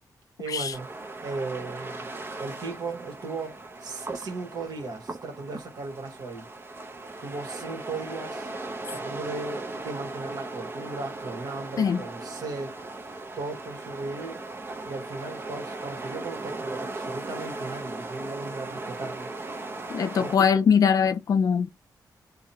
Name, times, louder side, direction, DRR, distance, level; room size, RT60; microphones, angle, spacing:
voice 1, 0.4-0.9 1.2-2.1 2.4-6.5 7.2-8.5 8.9-12.7 13.4-14.4 14.8-19.3 20.2-20.5, right 3 dB, 60° right, 1.1 m, -36 dB
sound 1, 0.7-20.4, right 2 dB, 30° right, 0.6 m, -38 dB
voice 2, 19.9-21.7, left 6 dB, 55° left, 0.4 m, -22 dB
2.7 x 2.1 x 2.7 m
wide cardioid pair, 135°, 7 cm